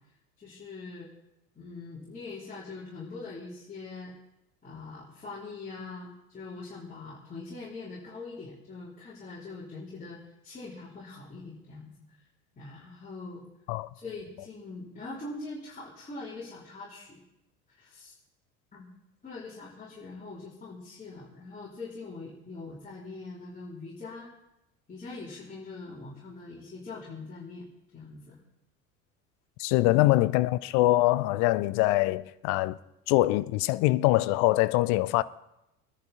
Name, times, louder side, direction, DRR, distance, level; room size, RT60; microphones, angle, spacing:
voice 1, 0.4-1.1 1.6-4.1 4.6-12.0 12.6-13.4 13.9-17.2 17.7-18.1 18.7-18.9 19.2-24.3 24.9-28.4 29.8-30.1, left 3 dB, 20° left, 3.6 m, -42 dB
voice 2, 29.6-32.8 33.1-35.2, left 18 dB, 45° left, 0.6 m, -23 dB
23.0 x 10.5 x 4.2 m
figure-of-eight pair, 65°, 43 cm